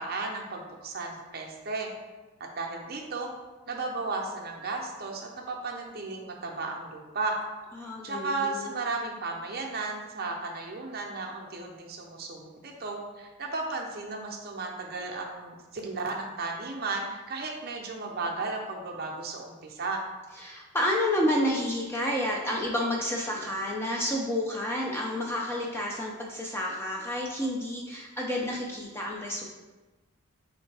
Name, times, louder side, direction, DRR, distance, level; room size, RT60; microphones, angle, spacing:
voice 1, 0.0-1.9 2.6-3.3 3.7-7.4 8.0-20.0, right 3 dB, 45° right, 0 dB, 0.5 m, -34 dB
voice 2, 7.8-8.7 20.4-29.5, left 1 dB, 10° left, -2 dB, 0.3 m, -30 dB
4.2 x 3.2 x 3.3 m, 1.2 s
head